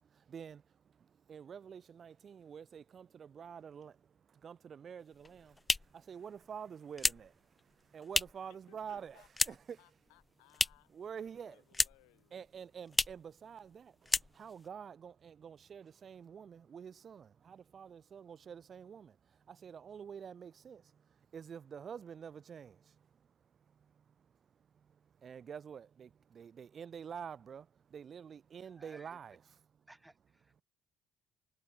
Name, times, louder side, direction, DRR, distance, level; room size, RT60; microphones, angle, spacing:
voice 1, 0.0-9.8 10.9-11.6 12.3-23.3 23.6-29.9, right 7 dB, 45° right, 5.7 m, -49 dB
sound 1, 5.1-8.6 8.8-9.8 10.1-11.0 11.3-12.2 12.5-12.6 12.9-13.3 13.6-13.8 14.0-14.7, left 3 dB, 20° left, 1.1 m, -34 dB
voice 2, 8.5-12.4, left 34 dB, 70° left, 7.5 m, -66 dB
voice 3, 28.8-29.2 29.9-30.6, right 1 dB, 10° right, 2.7 m, -59 dB
figure-of-eight pair, 50°, 0 cm